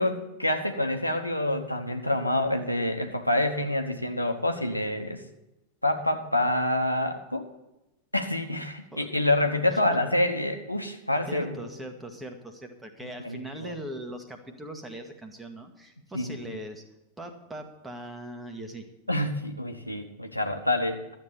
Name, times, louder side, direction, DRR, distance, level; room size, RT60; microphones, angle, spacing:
voice 1, 0.0-5.2 5.8-7.5 8.1-11.7 13.2-13.7 16.1-16.4 19.1-21.1, left 1 dB, 90° left, 5 dB, 1.1 m, -27 dB
voice 2, 11.3-16.8 17.2-18.8, right 1 dB, 10° right, 5 dB, 1.6 m, -40 dB
12.5 x 7.8 x 6.8 m, 0.94 s
figure-of-eight pair, 90°, 0 cm